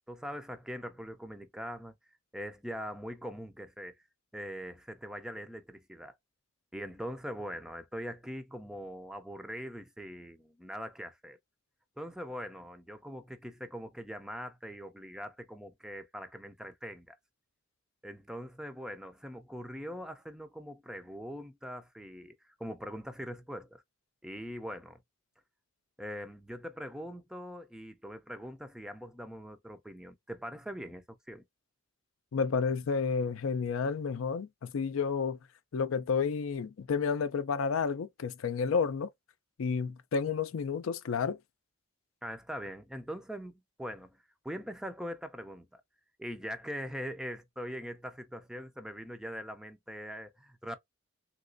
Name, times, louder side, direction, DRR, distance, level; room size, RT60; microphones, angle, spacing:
voice 1, 0.1-1.9 2.3-4.0 4.3-6.1 6.7-11.4 12.0-17.2 18.0-22.3 22.6-23.8 24.2-25.0 26.0-31.4 42.2-44.2 44.4-45.8 46.2-50.8, equal, 5° right, 0.4 m, -42 dB
voice 2, 32.3-35.4 35.7-39.1 39.6-41.4, left 5 dB, 80° left, 0.4 m, -31 dB
3.1 x 2.9 x 2.5 m
head